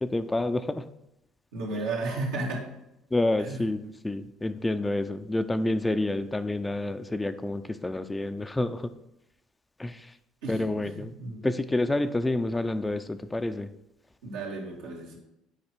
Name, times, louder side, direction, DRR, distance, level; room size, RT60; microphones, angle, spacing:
voice 1, 0.0-0.8 3.1-8.9 9.8-10.1 10.5-11.1 11.4-13.7, left 2 dB, 15° left, 10 dB, 0.6 m, -28 dB
voice 2, 1.5-2.7 3.4-3.6 10.4-11.4 14.2-15.2, right 2 dB, 85° right, -3 dB, 2.4 m, -33 dB
8.4 x 4.9 x 4.6 m, 0.86 s
hypercardioid pair, 70°, 0 cm